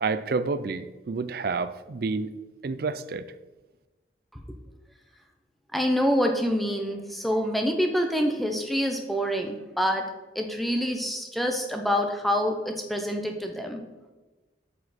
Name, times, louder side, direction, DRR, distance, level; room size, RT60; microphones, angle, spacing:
voice 1, 0.0-2.3 2.6-3.2, right 4 dB, 55° right, 13 dB, 0.4 m, -29 dB
voice 2, 5.7-10.1 10.3-13.8, equal, ahead, 4 dB, 0.7 m, -26 dB
8.3 x 4.9 x 4.2 m, 1.2 s
head